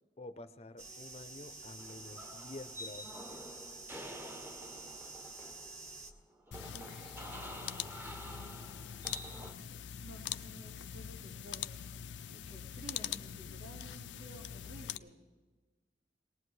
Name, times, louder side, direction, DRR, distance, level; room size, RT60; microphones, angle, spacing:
voice 1, 0.2-3.6, left 2 dB, 35° left, 11 dB, 0.6 m, -49 dB
sound 1, 0.8-6.1, right 3 dB, 40° right, 1.1 m, -49 dB
sound 2, 1.8-9.5, right 1 dB, 10° right, 0.8 m, -49 dB
voice 2, 4.7-5.1 6.7-7.4 10.0-11.8 12.3-15.2, right 1 dB, 75° right, -2 dB, 3.5 m, -53 dB
sound 3, 6.5-15.0, left 10 dB, 80° left, 0.5 m, -43 dB
22.0 x 19.0 x 3.2 m, 1.3 s
head